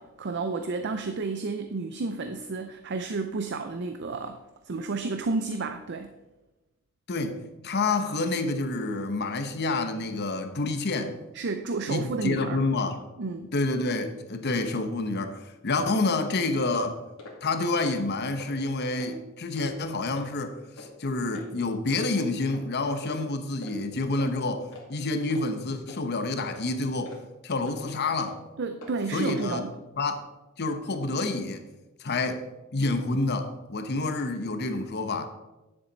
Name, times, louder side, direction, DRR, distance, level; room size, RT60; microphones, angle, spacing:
voice 1, 0.0-6.1 11.3-12.6 13.2-13.5 28.6-29.7, right 3 dB, 55° right, 7 dB, 0.5 m, -31 dB
voice 2, 7.1-11.2 11.9-13.0 13.5-15.4 15.6-17.0 17.4-27.2 27.4-28.4 29.1-29.6 30.0-30.2 30.6-31.6 32.0-32.4 32.7-35.3, left 2 dB, 55° left, 8 dB, 0.9 m, -28 dB
sound 1, 16.6-16.8 17.2-17.4 17.7-18.1 18.4-18.5 19.0-19.1 19.6-19.7 20.2-20.3 20.8-20.9 21.3-21.5 21.9-22.0 22.5-22.7 23.0-23.2 23.6-23.8 24.2-24.3 24.7-24.9 25.3-25.5 25.9-26.0 26.5-26.7 27.1-27.2 27.7-27.8 28.2-28.3 28.8-28.9 29.4-29.5, left 2 dB, 85° left, 2.4 m, -45 dB
10.0 x 7.3 x 4.0 m, 1.1 s
head